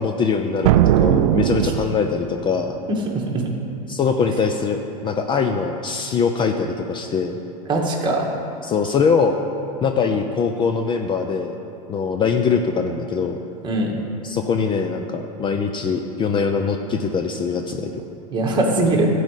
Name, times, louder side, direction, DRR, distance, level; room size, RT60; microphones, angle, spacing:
voice 1, 0.0-2.8 3.9-7.3 8.6-9.4 9.8-11.5 11.9-13.4 14.2-17.9, left 5 dB, 25° left, 5 dB, 0.6 m, -22 dB
sound 1, 0.6-2.4, right 12 dB, 70° right, 0.4 m, -18 dB
voice 2, 3.1-3.5 7.7-8.3 13.6-13.9 18.3-19.1, right 2 dB, 25° right, -1 dB, 1.9 m, -21 dB
12.0 x 5.0 x 8.3 m, 2.7 s
hypercardioid pair, 115°, 19 cm